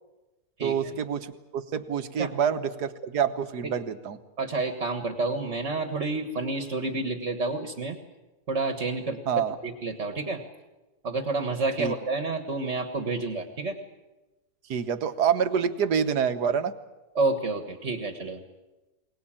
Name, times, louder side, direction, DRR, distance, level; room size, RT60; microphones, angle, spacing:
voice 1, 0.6-4.2 9.3-9.6 11.8-11.9 14.7-16.8, right 7 dB, 80° right, 10 dB, 1.7 m, -27 dB
voice 2, 4.4-8.0 8.5-9.2 9.6-10.4 11.0-13.8 17.2-18.4, right 3 dB, 45° right, 8 dB, 1.8 m, -29 dB
23.0 x 19.0 x 8.9 m, 1.1 s
omnidirectional pair, 1.7 m